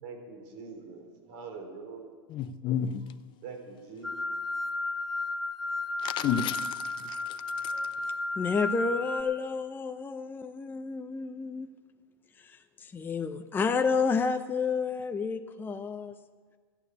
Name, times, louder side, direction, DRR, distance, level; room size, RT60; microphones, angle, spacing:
voice 1, 0.0-2.1 3.0-3.1 3.4-4.3 7.7-7.9, right 4 dB, 55° right, 3.8 m, -44 dB
voice 2, 2.3-3.0 6.0-7.7, left 8 dB, 35° left, 0.8 m, -32 dB
sound 1, 4.0-9.2, left 2 dB, ahead, 1.5 m, -33 dB
voice 3, 8.4-11.7 12.4-16.1, left 5 dB, 15° left, 0.6 m, -30 dB
13.5 x 8.7 x 8.5 m
hypercardioid pair, 100°, 13 cm